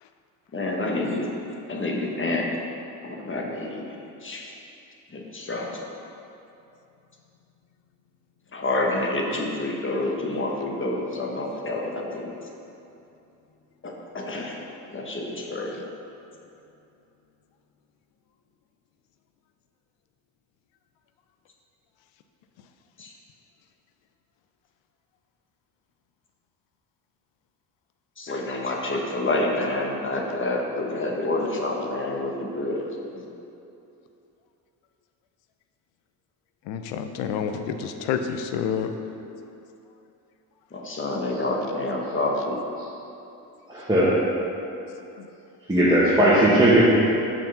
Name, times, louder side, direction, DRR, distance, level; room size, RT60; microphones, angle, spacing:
voice 1, 0.5-1.3 1.7-2.5 3.0-3.8 4.2-4.5 5.1-5.7 8.5-12.3 13.8-14.6 14.9-15.8 23.0-23.1 28.2-32.8 33.1-33.2 40.7-42.6, left 2 dB, 25° left, -1 dB, 1.2 m, -28 dB
voice 2, 36.7-38.9 45.2-45.3, left 7 dB, 70° left, 7 dB, 0.7 m, -28 dB
voice 3, 43.7-44.1 45.7-46.8, right 1 dB, 10° right, -9 dB, 1.6 m, -17 dB
5.9 x 4.6 x 5.6 m, 2.8 s
hypercardioid pair, 55°, 45 cm